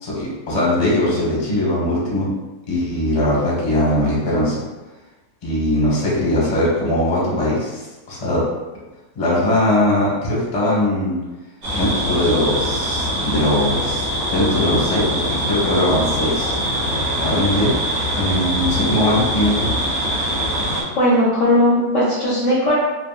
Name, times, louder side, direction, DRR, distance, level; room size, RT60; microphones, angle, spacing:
voice 1, 0.0-2.3 2.7-4.6 5.4-8.4 9.2-11.2 11.7-16.6 17.2-17.7 18.1-19.7, left 1 dB, 30° left, -6 dB, 0.7 m, -20 dB
sound 1, 11.6-20.8, equal, 50° right, 1.1 m, -23 dB
voice 2, 20.9-22.7, left 1 dB, 65° left, -6 dB, 0.8 m, -17 dB
3.5 x 2.0 x 2.3 m, 1.1 s
omnidirectional pair, 1.7 m